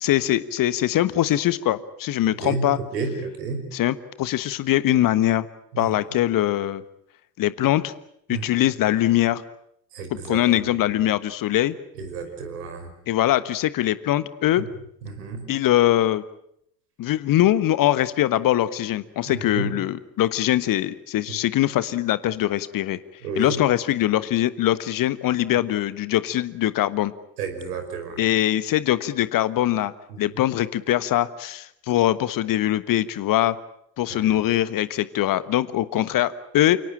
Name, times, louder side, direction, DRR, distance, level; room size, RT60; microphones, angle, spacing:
voice 1, 0.0-2.8 3.7-5.5 5.8-6.8 7.4-7.9 8.3-9.4 10.2-11.7 13.1-14.6 15.5-16.2 17.0-23.0 23.3-27.1 28.2-29.9 30.2-33.6 34.0-36.8, left 13 dB, 40° left, 16 dB, 1.4 m, -22 dB
voice 2, 2.9-3.6 5.7-5.9 8.3-8.6 9.9-10.4 12.0-12.9 15.0-15.4 19.3-19.7 23.2-23.6 27.4-28.2 30.1-30.2 34.1-34.4, right 4 dB, 70° right, 6 dB, 5.5 m, -31 dB
29.5 x 18.0 x 8.9 m, 0.74 s
figure-of-eight pair, 60°, 49 cm